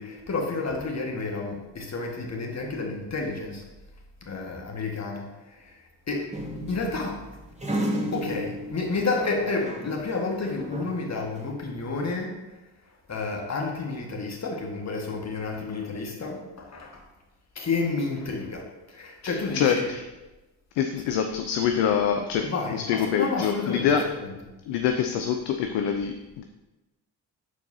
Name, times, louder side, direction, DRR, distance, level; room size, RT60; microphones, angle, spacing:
voice 1, 0.0-3.6 4.2-5.8 6.1-6.4 6.7-7.2 8.1-12.4 13.1-17.0 17.6-19.9 22.4-24.5, left 3 dB, 30° left, 1 dB, 1.7 m, -30 dB
sound 1, 6.3-10.0 10.3-11.5, right 1 dB, 15° right, 1.7 m, -33 dB
voice 2, 19.2-20.1 20.7-24.1 24.7-26.4, left 8 dB, 55° left, 5 dB, 0.7 m, -25 dB
11.5 x 4.6 x 2.8 m, 1.1 s
figure-of-eight pair, 45°, 49 cm